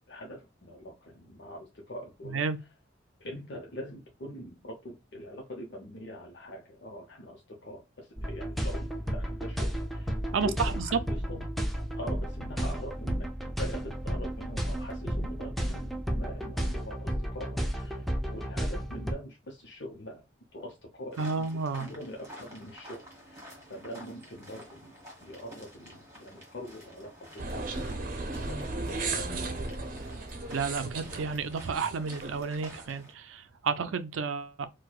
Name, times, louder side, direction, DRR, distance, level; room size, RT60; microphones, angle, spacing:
voice 1, 0.1-2.4 3.2-11.4 12.0-20.2 20.5-21.4 21.7-23.0 23.3-23.4 23.7-24.9 25.2-29.6, equal, 60° left, 0.8 m, -43 dB
sound 1, 8.2-19.1, equal, ahead, 0.4 m, -33 dB
voice 2, 10.3-10.9 21.2-21.9 30.5-34.7, right 5 dB, 85° right, 0.5 m, -31 dB
sound 2, 21.1-33.1, equal, 15° right, 1.4 m, -50 dB
sound 3, 27.4-32.8, right 3 dB, 45° right, 0.7 m, -36 dB
4.6 x 2.2 x 2.3 m
head